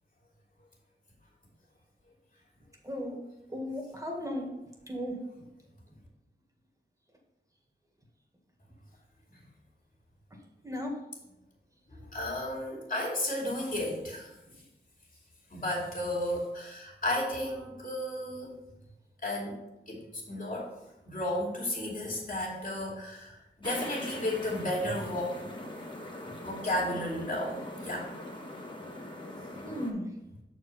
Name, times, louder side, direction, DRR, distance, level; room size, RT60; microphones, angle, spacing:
voice 1, 2.8-3.2 3.5-4.5 4.9-5.1 10.6-10.9 29.6-30.1, left 1 dB, 20° right, 0 dB, 1.7 m, -35 dB
voice 2, 11.9-14.3 15.5-18.6 19.2-19.6 19.9-20.0 20.3-20.7 21.1-25.4 26.4-28.1, left 1 dB, 50° left, -3 dB, 2.6 m, -33 dB
sound 1, 23.6-29.9, left 1 dB, 25° left, 1.4 m, -42 dB
6.7 x 4.6 x 5.5 m, 0.93 s
wide cardioid pair, 60°, 18 cm